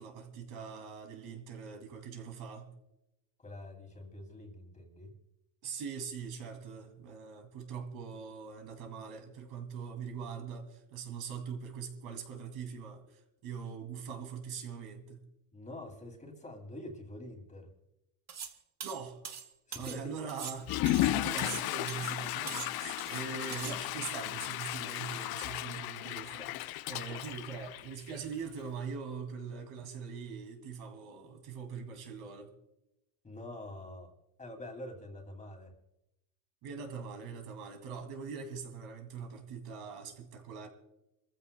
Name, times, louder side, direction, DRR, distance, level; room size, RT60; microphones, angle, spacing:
voice 1, 0.0-2.7 5.6-15.2 18.8-19.2 19.8-32.5 36.6-40.7, right 6 dB, 65° right, 2.5 m, -42 dB
voice 2, 3.4-5.1 15.5-17.7 19.7-20.2 27.1-27.2 33.2-34.1 34.4-35.7, left 1 dB, 20° left, 2.5 m, -46 dB
sound 1, 18.3-18.5 18.8-20.0 20.3-21.6 21.9-22.2 22.5-23.2 23.5-23.8, right 7 dB, 40° right, 1.3 m, -43 dB
Water / Toilet flush, 20.6-28.3, left 16 dB, 70° left, 0.5 m, -34 dB
27.0 x 15.0 x 2.2 m
cardioid pair, 130°, 39 cm